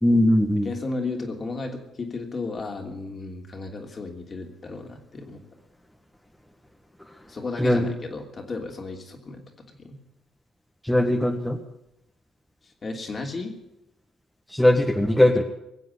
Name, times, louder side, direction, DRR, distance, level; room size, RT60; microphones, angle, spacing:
voice 1, 0.0-0.7 7.6-7.9 10.8-11.6 14.5-15.4, left 1 dB, 5° left, 2 dB, 1.8 m, -20 dB
voice 2, 0.6-5.4 7.3-10.0 12.8-13.5, left 3 dB, 40° left, 3 dB, 3.0 m, -34 dB
20.5 x 7.7 x 8.4 m, 0.85 s
supercardioid pair, 60°, 0 cm